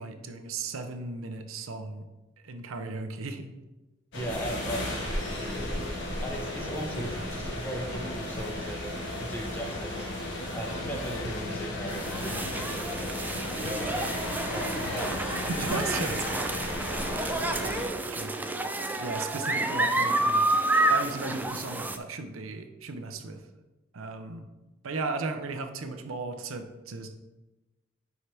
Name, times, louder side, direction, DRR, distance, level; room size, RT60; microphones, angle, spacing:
voice 1, 0.0-2.1 2.4-3.5 6.9-7.3 15.5-16.3 18.1-18.3 19.0-20.5 20.9-23.4 23.9-24.5 24.8-27.2, right 3 dB, 75° right, 7 dB, 0.7 m, -35 dB
sound 1, 4.1-17.9, left 1 dB, 60° left, 1.7 m, -34 dB
voice 2, 4.1-5.8 6.2-8.8 9.2-10.1 10.5-13.9 14.5-15.7 16.1-16.2, right 1 dB, 10° left, -1 dB, 1.2 m, -38 dB
sound 2, 10.7-15.9, left 7 dB, 90° left, 0.3 m, -43 dB
sound 3, 11.9-22.0, right 2 dB, 10° right, 0.3 m, -29 dB
9.9 x 4.8 x 3.4 m, 1.1 s
head